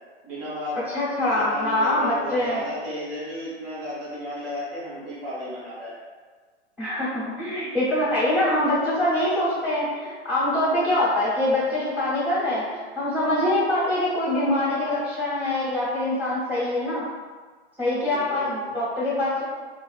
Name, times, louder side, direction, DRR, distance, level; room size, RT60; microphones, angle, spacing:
voice 1, 0.2-0.8 1.3-5.9 18.1-18.5, equal, 55° right, -8 dB, 1.3 m, -33 dB
voice 2, 0.9-2.6 6.8-17.0 17.8-19.4, left 1 dB, 5° right, -12 dB, 0.6 m, -24 dB
2.4 x 2.3 x 2.3 m, 1.5 s
hypercardioid pair, 150°, 34 cm